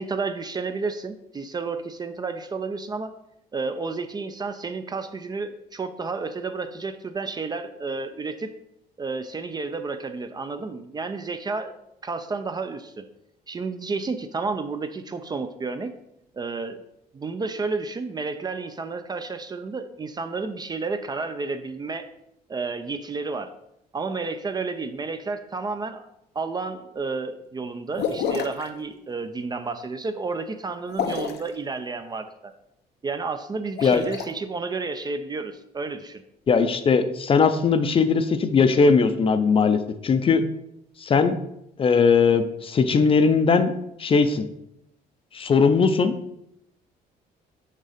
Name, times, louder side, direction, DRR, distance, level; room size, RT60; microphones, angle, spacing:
voice 1, 0.0-3.1 3.5-8.5 9.0-11.7 12.0-13.1 13.5-15.9 16.3-16.8 17.1-22.1 22.5-23.5 23.9-26.1 26.3-32.5 33.0-36.2, right 4 dB, 25° right, 9 dB, 0.4 m, -31 dB
sound 1, 28.0-28.7 30.9-31.5 33.6-34.3, left 7 dB, 75° left, 0.7 m, -28 dB
voice 2, 36.5-40.4 41.0-41.4 41.8-43.7 44.0-44.5 45.3-46.2, left 5 dB, 35° left, 9 dB, 0.5 m, -19 dB
6.6 x 3.7 x 5.0 m, 0.80 s
cardioid pair, 110°, 17 cm